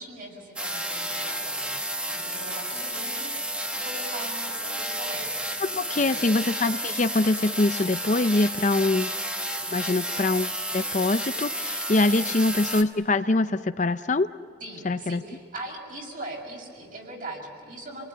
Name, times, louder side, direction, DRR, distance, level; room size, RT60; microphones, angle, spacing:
voice 1, 0.0-1.7 2.0-5.5 5.9-6.3 12.0-12.5 14.6-18.1, right 2 dB, 45° right, 0 dB, 6.5 m, -40 dB
sound 1, 0.6-12.8, equal, 5° right, 1.4 m, -31 dB
voice 2, 5.6-9.1 9.7-14.3 14.8-15.2, left 2 dB, 40° left, 11 dB, 0.6 m, -24 dB
29.5 x 19.5 x 9.3 m, 2.2 s
head